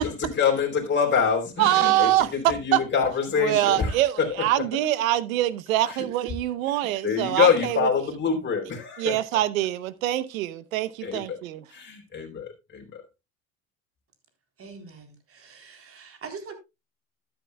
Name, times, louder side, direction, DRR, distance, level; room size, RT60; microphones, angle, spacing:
voice 1, 0.0-4.7 5.9-6.1 6.7-9.2 11.0-11.4 11.7-13.0, left 6 dB, 25° left, 4.0 m, -26 dB
voice 2, 1.6-2.8 3.4-7.8 9.0-11.6, right 14 dB, 85° right, 1.0 m, -24 dB
voice 3, 14.6-16.5, right 5 dB, 35° right, 3.8 m, -43 dB
12.5 x 11.0 x 2.3 m
supercardioid pair, 95°, 40 cm